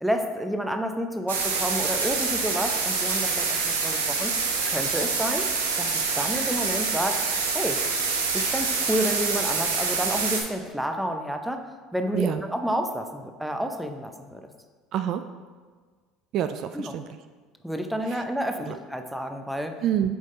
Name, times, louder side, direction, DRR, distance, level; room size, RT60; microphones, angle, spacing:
voice 1, 0.0-4.3 4.7-5.5 5.8-7.2 7.5-7.8 8.3-11.7 11.9-14.5 16.7-16.9 17.6-19.8, equal, 5° right, 5 dB, 0.7 m, -30 dB
sound 1, 1.3-10.4, right 4 dB, 90° right, 0.8 m, -26 dB
voice 2, 14.9-15.2 16.3-17.1 18.1-18.2 18.6-18.8 19.8-20.2, right 10 dB, 55° right, 9 dB, 0.3 m, -27 dB
7.8 x 3.6 x 3.8 m, 1.5 s
hypercardioid pair, 75°, 0 cm